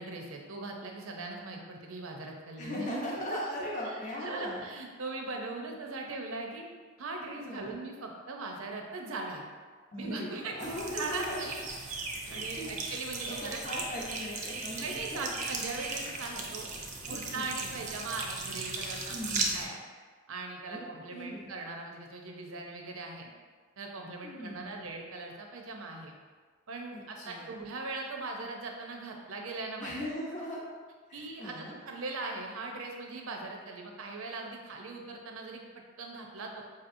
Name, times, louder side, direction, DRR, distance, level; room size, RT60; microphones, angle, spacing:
voice 1, 0.0-3.4 3.8-6.7 7.0-9.5 10.0-13.6 14.8-16.7 17.1-19.8 20.3-23.3 23.8-26.1 26.7-29.9 30.4-30.5 31.1-35.6 36.0-36.6, right 3 dB, 80° right, 1 dB, 0.6 m, -40 dB
voice 2, 2.6-4.6 7.4-7.7 9.9-11.5 12.2-12.7 13.3-15.2 17.1-17.8 19.1-19.6 20.7-20.8 21.1-21.5 24.2-24.9 26.9-27.5 29.8-30.6 31.1-31.7, left 1 dB, 35° left, -4 dB, 0.7 m, -39 dB
sound 1, 10.6-19.6, right 3 dB, 35° right, 0.5 m, -37 dB
5.1 x 2.8 x 2.6 m, 1.5 s
head